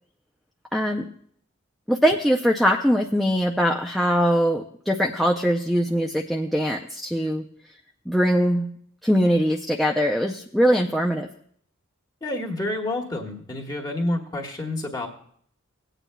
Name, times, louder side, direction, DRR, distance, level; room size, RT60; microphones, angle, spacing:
voice 1, 0.7-1.1 1.9-7.4 8.1-8.7 9.0-11.3, equal, ahead, -1 dB, 0.4 m, -22 dB
voice 2, 12.2-15.1, left 1 dB, 20° left, 0 dB, 1.5 m, -29 dB
18.0 x 9.0 x 2.2 m, 0.62 s
head